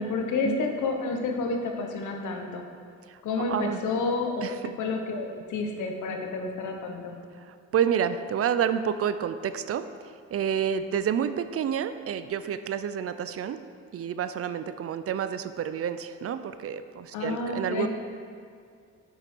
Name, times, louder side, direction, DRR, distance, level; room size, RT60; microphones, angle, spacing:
voice 1, 0.0-2.6 3.2-7.1 17.1-17.9, left 3 dB, 75° left, 3 dB, 1.2 m, -30 dB
voice 2, 3.1-3.8 4.4-4.6 7.4-13.6 13.9-17.9, right 8 dB, 50° right, 11 dB, 0.5 m, -29 dB
8.8 x 6.6 x 4.6 m, 2.3 s
cardioid pair, 90°, 30 cm